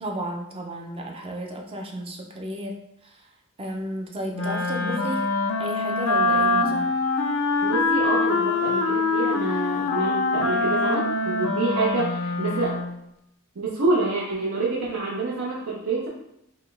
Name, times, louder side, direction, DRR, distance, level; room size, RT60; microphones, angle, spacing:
voice 1, 0.0-3.3 3.6-5.3 5.6-6.9, equal, 25° right, 1 dB, 0.5 m, -33 dB
Wind instrument woodwind instrument, 4.3-13.0, left 3 dB, 75° left, 0.4 m, -24 dB
voice 2, 7.6-12.8 13.6-16.1, right 3 dB, 85° right, -5 dB, 0.6 m, -27 dB
4.0 x 2.1 x 3.2 m, 0.81 s
head